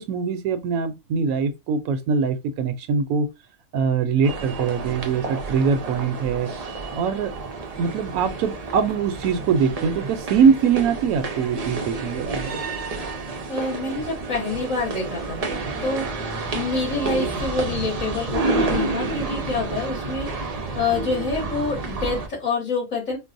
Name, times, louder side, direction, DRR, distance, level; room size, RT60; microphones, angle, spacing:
voice 1, 0.0-3.3 3.7-6.5 6.9-7.3 7.8-12.5, right 6 dB, 80° right, 1.0 m, -22 dB
sound 1, 4.2-22.3, right 3 dB, 60° right, 0.4 m, -30 dB
voice 2, 13.5-23.2, left 3 dB, 65° left, 2.2 m, -27 dB
4.5 x 2.0 x 2.5 m
omnidirectional pair, 1.5 m